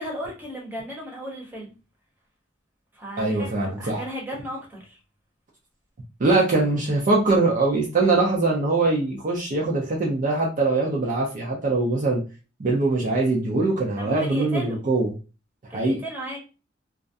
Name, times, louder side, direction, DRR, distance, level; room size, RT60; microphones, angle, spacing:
voice 1, 0.0-1.7 2.9-5.0 14.0-14.8 15.7-16.4, equal, 10° right, -3 dB, 0.8 m, -35 dB
voice 2, 3.2-4.0 6.2-12.2 12.6-15.1 15.7-16.0, right 3 dB, 45° right, -2 dB, 0.5 m, -22 dB
2.3 x 2.1 x 2.5 m, 0.32 s
head